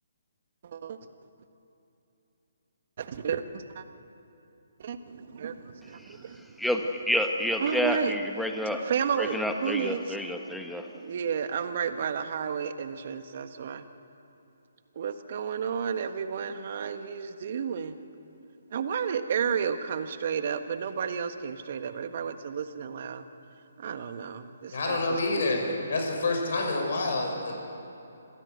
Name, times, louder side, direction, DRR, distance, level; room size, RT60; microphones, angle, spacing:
voice 1, 0.6-1.0 3.0-3.8 4.8-6.6 7.6-8.1 8.8-10.2 10.9-13.8 14.9-17.9 18.7-23.2 23.8-25.2 25.5-25.6, right 7 dB, 50° right, 9 dB, 1.4 m, -32 dB
voice 2, 6.6-8.8 9.2-10.9, left 1 dB, ahead, 4 dB, 1.4 m, -29 dB
voice 3, 24.7-27.5, left 2 dB, 60° left, 2 dB, 6.3 m, -28 dB
27.0 x 16.0 x 8.2 m, 2.9 s
hypercardioid pair, 145°, 0 cm